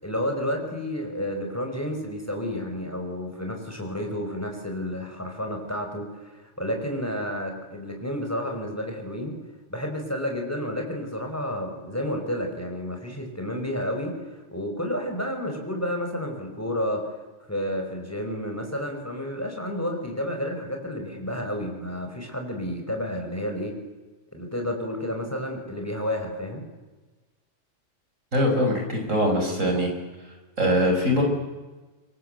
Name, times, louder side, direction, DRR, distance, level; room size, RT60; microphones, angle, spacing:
voice 1, 0.0-9.3 9.7-17.1 17.5-23.7 24.3-26.6, equal, 10° left, 3 dB, 5.4 m, -31 dB
voice 2, 28.3-29.9 30.6-31.2, equal, 80° right, 2 dB, 6.2 m, -22 dB
26.0 x 23.5 x 8.0 m, 1.2 s
omnidirectional pair, 1.3 m